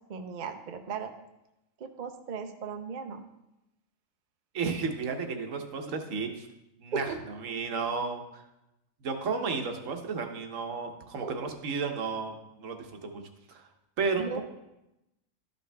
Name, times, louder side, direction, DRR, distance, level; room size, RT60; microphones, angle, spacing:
voice 1, 0.1-1.1 1.8-3.2 6.9-7.2 11.2-11.5 14.2-14.4, right 5 dB, 50° right, 6 dB, 0.6 m, -36 dB
voice 2, 4.5-6.5 6.8-7.1 7.4-8.4 9.0-13.2 13.5-13.7 14.0-14.4, right 4 dB, 75° right, 5 dB, 1.2 m, -33 dB
12.5 x 5.3 x 3.3 m, 0.92 s
omnidirectional pair, 1.4 m